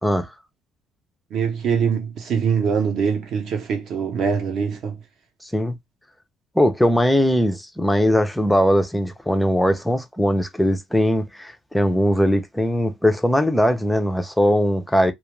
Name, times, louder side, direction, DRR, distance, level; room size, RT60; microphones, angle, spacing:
voice 1, 1.3-5.0, right 6 dB, 55° right, 0.6 m, -23 dB
voice 2, 5.4-5.8 6.6-15.1, equal, ahead, 0.4 m, -20 dB
2.2 x 2.1 x 3.0 m
cardioid pair, 165°, 0 cm